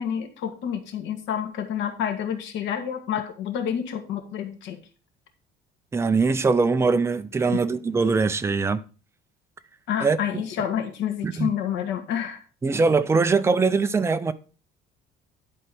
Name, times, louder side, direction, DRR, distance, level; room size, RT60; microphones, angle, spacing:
voice 1, 0.0-4.8 7.4-7.6 9.9-12.4, left 9 dB, 85° left, 2.1 m, -29 dB
voice 2, 5.9-8.8 10.0-10.4 11.2-11.5 12.6-14.3, right 4 dB, 15° right, 0.5 m, -22 dB
11.0 x 4.6 x 6.0 m
cardioid pair, 165°, 18 cm